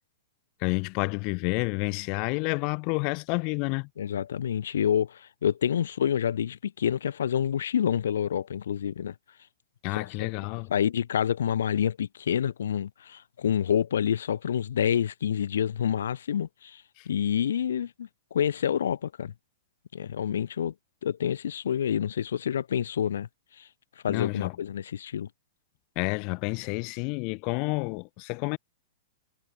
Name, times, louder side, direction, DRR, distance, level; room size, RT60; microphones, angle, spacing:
voice 1, 0.6-3.9 9.8-10.7 17.0-17.1 24.1-24.5 26.0-28.6, left 35 dB, 30° left, 0.9 m, -29 dB
voice 2, 4.0-9.1 9.9-10.3 10.7-19.3 19.9-20.7 21.0-23.3 23.6-23.7 24.0-25.3, left 9 dB, 80° left, 0.8 m, -28 dB
supercardioid pair, 175°, 0 cm